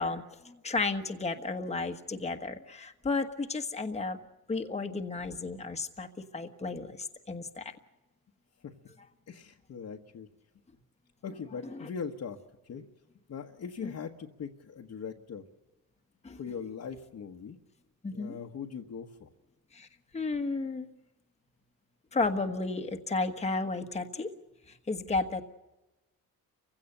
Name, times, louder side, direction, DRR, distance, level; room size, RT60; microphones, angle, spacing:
voice 1, 0.0-4.2 4.5-6.1 6.3-7.7 11.6-11.9 13.8-13.9 16.2-16.4 18.0-18.4 19.7-19.9 20.1-20.9 22.1-24.3 24.7-25.4, left 3 dB, 20° left, 6 dB, 1.4 m, -33 dB
voice 2, 9.3-10.3 11.2-12.4 12.6-12.9 13.3-15.5 16.4-17.6 18.1-19.3, left 6 dB, 50° left, 0 dB, 1.4 m, -40 dB
29.5 x 16.5 x 6.7 m, 1.1 s
cardioid pair, 120°, 36 cm